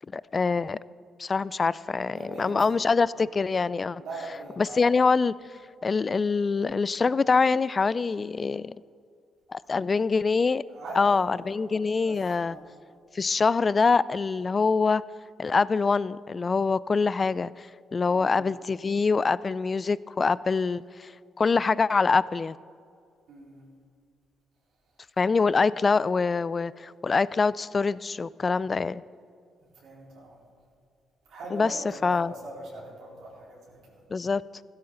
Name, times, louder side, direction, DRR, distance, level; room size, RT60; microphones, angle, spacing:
voice 1, 0.1-0.8 1.2-4.0 4.6-5.3 5.8-8.8 9.5-10.6 10.9-12.6 13.1-15.0 15.4-21.1 21.4-22.6 25.2-29.0 31.5-32.3 34.1-34.4, left 4 dB, 35° left, 20 dB, 0.3 m, -24 dB
voice 2, 2.1-2.6 3.1-3.2 4.0-4.8 10.7-12.1 12.4-12.6 18.1-18.4 23.3-23.6 29.8-30.4 31.3-33.8, right 2 dB, 75° right, -5 dB, 4.2 m, -42 dB
16.0 x 13.0 x 3.9 m, 2.3 s
cardioid pair, 90°, 0 cm